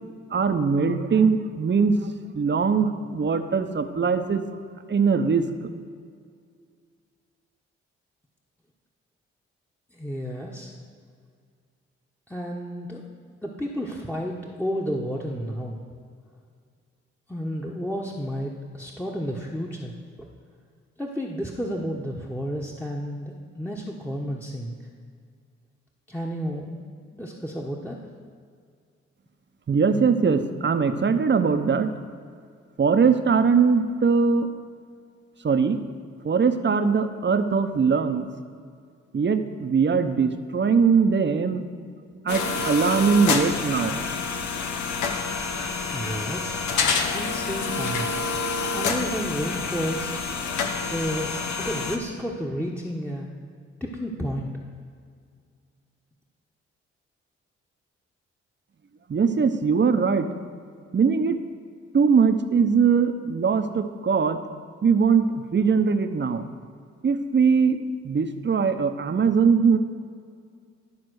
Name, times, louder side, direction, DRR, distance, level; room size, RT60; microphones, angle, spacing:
voice 1, 0.1-1.9 2.3-5.5 29.7-31.9 32.8-34.5 35.4-35.8 36.2-38.3 39.1-41.6 42.1-44.0 59.1-60.3 60.9-61.4 61.9-64.4 64.8-66.4 67.0-69.8, right 5 dB, 40° right, 8 dB, 0.9 m, -21 dB
voice 2, 9.9-10.7 12.3-13.0 13.4-15.8 17.3-20.3 21.0-24.7 26.1-26.8 27.1-28.0 45.9-46.6 47.1-48.1 48.7-50.2 50.9-53.3 53.8-54.5, equal, 5° left, -2 dB, 1.2 m, -31 dB
sound 1, 42.3-52.0, left 4 dB, 70° left, 1.0 m, -28 dB
12.0 x 4.2 x 6.3 m, 2.2 s
hypercardioid pair, 45°, 30 cm